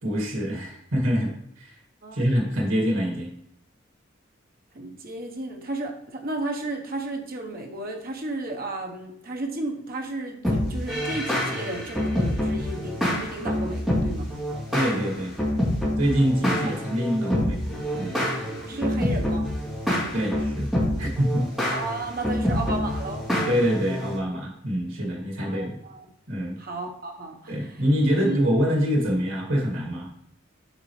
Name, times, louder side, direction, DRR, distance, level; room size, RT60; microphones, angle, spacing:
voice 1, 0.0-1.7 2.1-3.3 14.7-15.3 16.0-18.3 20.1-20.7 21.0-21.5 23.5-25.8 26.3-26.6 27.5-30.2, equal, 85° right, 0 dB, 2.2 m, -25 dB
voice 2, 2.0-2.6 4.7-14.3 16.7-16.8 18.6-19.5 21.7-23.3 25.4-26.0 26.6-27.8 28.2-28.4, right 2 dB, 50° right, 2 dB, 1.1 m, -33 dB
sound 1, 10.4-24.2, left 1 dB, ahead, 3.3 m, -27 dB
9.4 x 5.6 x 3.2 m, 0.72 s
head